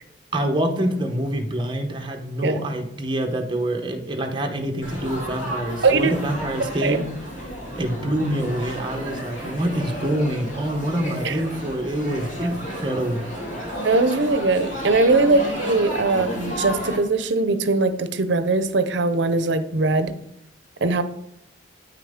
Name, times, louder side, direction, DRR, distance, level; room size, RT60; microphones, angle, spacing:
voice 1, 0.3-7.0 7.8-13.2, right 1 dB, 25° right, 3 dB, 1.0 m, -26 dB
Laughter / Chatter / Crowd, 4.8-17.0, equal, 80° left, 3.1 m, -32 dB
voice 2, 13.8-20.2 20.8-21.0, right 3 dB, 65° right, 12 dB, 0.6 m, -20 dB
9.0 x 5.9 x 3.6 m, 0.77 s
head